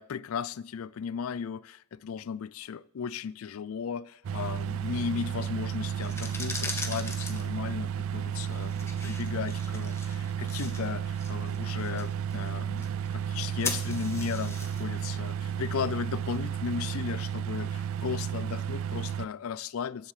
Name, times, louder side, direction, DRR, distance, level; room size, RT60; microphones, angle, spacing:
voice 1, 0.0-20.1, left 7 dB, 80° left, 0.4 m, -36 dB
sound 1, 4.2-19.3, right 8 dB, 70° right, 0.3 m, -33 dB
sound 2, 5.9-16.8, left 3 dB, 15° left, 1.1 m, -41 dB
14.0 x 11.0 x 3.2 m
head